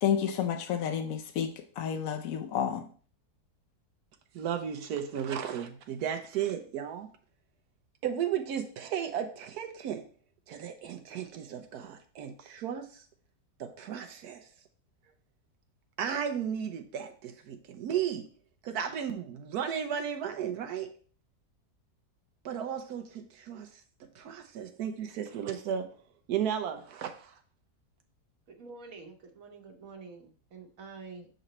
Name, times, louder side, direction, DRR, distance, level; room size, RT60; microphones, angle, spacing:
voice 1, 0.0-2.9, left 8 dB, 65° left, 6 dB, 1.0 m, -30 dB
voice 2, 4.3-7.1 8.0-10.0 10.5-13.0 13.6-14.5 16.0-18.3 18.6-20.9 22.4-23.7 24.2-26.0 26.3-27.3, right 8 dB, 80° right, 7 dB, 1.1 m, -34 dB
voice 3, 28.5-31.3, right 4 dB, 60° right, 4 dB, 1.4 m, -47 dB
6.3 x 3.9 x 4.1 m, 0.43 s
omnidirectional pair, 1.7 m